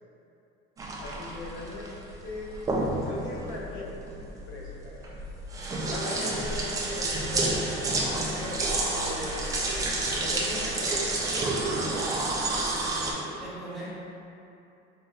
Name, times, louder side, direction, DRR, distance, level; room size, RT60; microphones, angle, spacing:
sound 1, 0.8-13.1, right 2 dB, 15° right, 0.3 m, -30 dB
voice 1, 1.0-1.9 2.2-2.6 2.9-5.2 5.8-9.5 10.2-11.8, left 2 dB, 85° left, -3 dB, 0.8 m, -40 dB
voice 2, 13.0-13.9, right 1 dB, ahead, -11 dB, 0.9 m, -40 dB
4.3 x 3.8 x 2.3 m, 2.7 s
cardioid pair, 175°, 21 cm